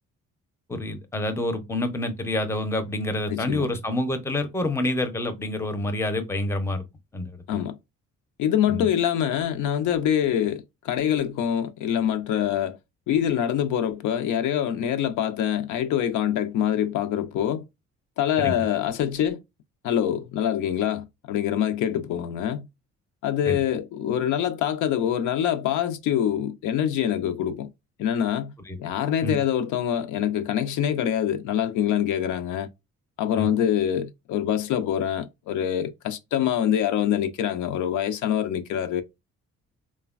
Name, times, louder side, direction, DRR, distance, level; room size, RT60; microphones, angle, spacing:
voice 1, 0.7-6.8 7.1-7.6 8.7-8.9 18.4-18.6 23.5-23.6 28.7-28.8 29.2-29.4 33.4-33.5, left 1 dB, 10° left, 0.5 m, -28 dB
voice 2, 3.3-3.7 7.5-7.8 8.4-12.8 13.1-17.6 18.2-19.4 19.8-22.7 23.2-27.7 28.0-28.5 28.8-32.7 33.2-39.0, left 10 dB, 80° left, 0.4 m, -25 dB
3.2 x 2.1 x 2.3 m
cardioid pair, 90°, 30 cm